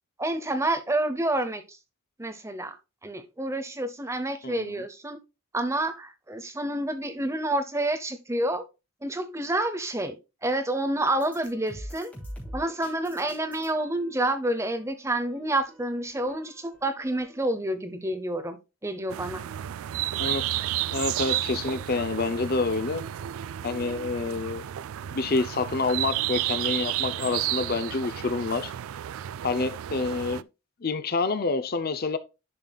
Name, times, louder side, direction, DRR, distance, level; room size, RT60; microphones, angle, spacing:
voice 1, 0.2-1.6 2.2-2.7 3.0-5.2 5.5-8.6 9.0-10.2 10.4-12.1 12.5-19.4, right 1 dB, 15° right, 0.8 m, -28 dB
voice 2, 4.4-4.8 20.2-20.4 20.9-23.1 23.6-24.7 25.1-28.7 29.4-30.5 30.8-32.2, left 3 dB, 45° left, 0.6 m, -28 dB
sound 1, 11.1-17.5, equal, 5° left, 2.8 m, -45 dB
sound 2, 19.1-30.4, right 13 dB, 80° right, 0.3 m, -32 dB
11.0 x 5.4 x 2.3 m
head